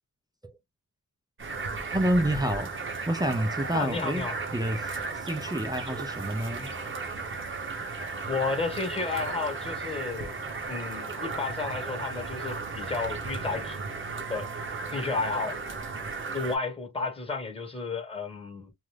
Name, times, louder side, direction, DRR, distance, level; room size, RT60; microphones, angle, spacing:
sound 1, 1.4-16.6, right 4 dB, 35° right, 0.8 m, -35 dB
voice 1, 1.9-2.7 3.1-4.3 4.5-6.7, right 1 dB, 10° right, 0.5 m, -28 dB
voice 2, 3.7-4.4 8.2-10.4 10.7-14.0 14.3-14.5 14.9-15.6 16.3-18.7, left 4 dB, 15° left, 1.2 m, -32 dB
2.5 x 2.3 x 3.2 m
wide cardioid pair, 125°, 35 cm